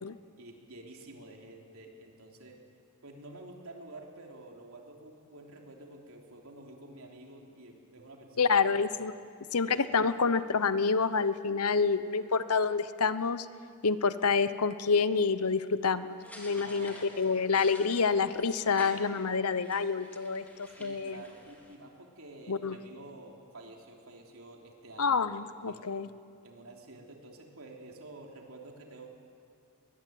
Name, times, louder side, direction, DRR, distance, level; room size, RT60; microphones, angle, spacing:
voice 1, 0.4-2.6 3.0-8.9 9.6-9.9 16.5-17.1 20.7-25.9 26.4-29.1, right 2 dB, 70° right, 1 dB, 3.4 m, -49 dB
voice 2, 8.4-9.1 9.5-13.5 13.8-21.2 22.5-22.8 25.0-26.1, left 5 dB, 80° left, 14 dB, 0.9 m, -28 dB
sound 1, 16.2-21.7, left 1 dB, 5° left, 3.5 m, -50 dB
22.5 x 21.0 x 9.5 m, 2.3 s
head